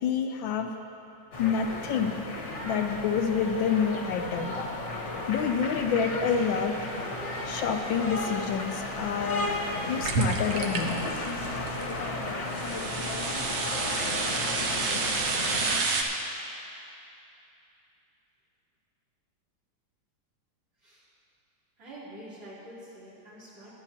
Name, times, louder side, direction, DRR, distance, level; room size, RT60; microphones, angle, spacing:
voice 1, 0.0-0.7 1.4-2.1 2.6-4.6 5.3-6.8 7.5-9.6 9.9-11.0, left 6 dB, 75° left, 4 dB, 1.3 m, -28 dB
sound 1, 1.3-15.8, left 2 dB, 40° left, 1.4 m, -34 dB
sound 2, 10.0-12.0 12.5-16.0, right 4 dB, 85° right, 1.9 m, -30 dB
voice 2, 21.8-23.8, right 1 dB, 60° right, -10 dB, 4.3 m, -46 dB
23.0 x 9.8 x 2.9 m, 2.7 s
omnidirectional pair, 2.3 m